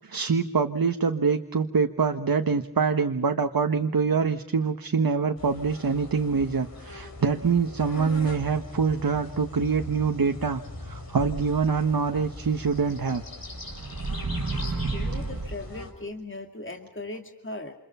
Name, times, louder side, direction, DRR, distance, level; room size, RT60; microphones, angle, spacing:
voice 1, 0.0-13.2 14.7-14.8, right 5 dB, 80° right, 6 dB, 1.3 m, -25 dB
sound 1, 5.4-15.9, left 2 dB, 80° left, 6.3 m, -41 dB
sound 2, 11.2-12.2 12.7-12.8 13.4-15.9, right 3 dB, 60° right, 2.0 m, -32 dB
voice 2, 14.6-17.8, left 2 dB, 35° left, 4 dB, 2.4 m, -39 dB
29.0 x 27.5 x 5.6 m, 0.78 s
wide cardioid pair, 60°, 35 cm